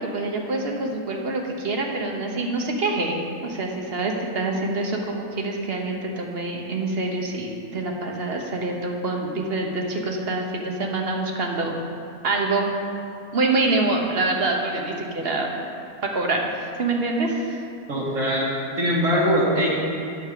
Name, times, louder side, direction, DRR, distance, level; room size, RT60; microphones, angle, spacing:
voice 1, 0.0-11.7 12.2-12.7 13.3-15.5 16.0-16.5 16.8-17.6, right 2 dB, 45° right, 1 dB, 1.2 m, -26 dB
voice 2, 17.9-18.4 18.8-19.7, equal, 65° right, -5 dB, 2.3 m, -21 dB
9.0 x 5.7 x 6.8 m, 2.5 s
omnidirectional pair, 1.5 m